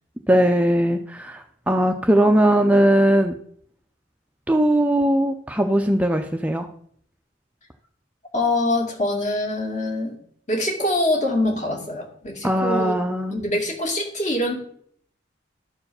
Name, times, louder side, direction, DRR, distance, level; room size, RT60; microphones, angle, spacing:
voice 1, 0.3-3.3 4.5-6.7 12.4-13.4, right 1 dB, 5° right, 5 dB, 0.5 m, -19 dB
voice 2, 8.3-10.2 10.5-12.9 13.3-14.6, left 1 dB, 40° left, 3 dB, 2.1 m, -24 dB
12.0 x 4.7 x 6.8 m, 0.65 s
head